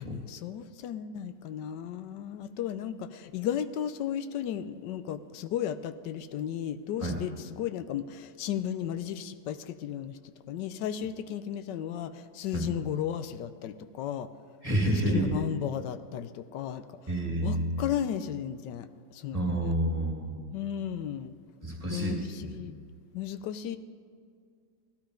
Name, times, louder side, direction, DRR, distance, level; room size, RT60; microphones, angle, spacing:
voice 1, 0.0-10.2 10.5-14.3 15.1-16.8 17.4-19.7 20.5-21.3 21.9-22.8 23.1-23.8, left 10 dB, 85° left, 11 dB, 1.3 m, -34 dB
voice 2, 14.6-15.3 17.1-17.9 19.3-20.4 21.6-22.6, right 1 dB, 20° right, 0 dB, 2.3 m, -29 dB
17.0 x 11.5 x 5.1 m, 2.1 s
omnidirectional pair, 1.9 m